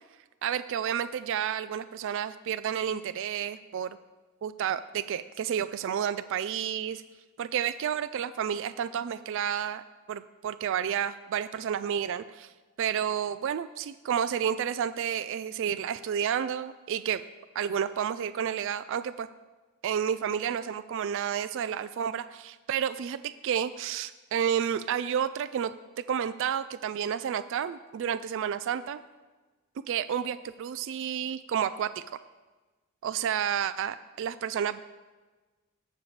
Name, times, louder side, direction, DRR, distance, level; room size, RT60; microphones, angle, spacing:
voice 1, 0.4-4.0 4.4-7.0 7.4-9.8 10.1-12.5 12.8-17.2 17.6-19.3 19.8-29.0 29.9-32.0 33.0-34.8, right 8 dB, 60° right, 12 dB, 0.3 m, -30 dB
19.0 x 6.6 x 3.3 m, 1.2 s
head